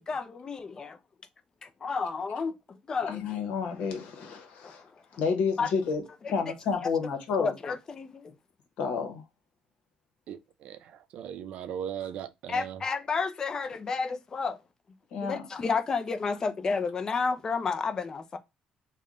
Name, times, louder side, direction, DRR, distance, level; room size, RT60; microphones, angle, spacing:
voice 1, 0.1-1.0 1.6-3.2 4.6-4.7 5.6-5.7 7.4-8.3 12.5-14.6 15.2-18.4, left 4 dB, 30° left, 0.4 m, -31 dB
voice 2, 3.1-4.8 5.2-6.0 6.3-7.5 8.8-9.2 15.1-15.4, left 5 dB, 75° left, 1.0 m, -30 dB
voice 3, 10.3-12.8, right 9 dB, 65° right, 0.5 m, -38 dB
3.4 x 2.2 x 3.6 m
cardioid pair, 130°, 2 cm